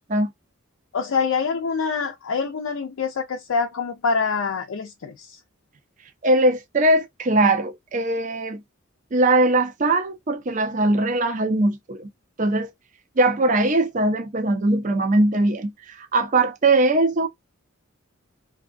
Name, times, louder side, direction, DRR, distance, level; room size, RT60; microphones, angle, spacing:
voice 1, 0.9-5.4, left 5 dB, 75° left, 0.5 m, -25 dB
voice 2, 6.2-8.6 9.1-12.1 12.4-12.7 13.2-17.3, right 2 dB, 35° right, 0.4 m, -20 dB
2.6 x 2.2 x 2.5 m
head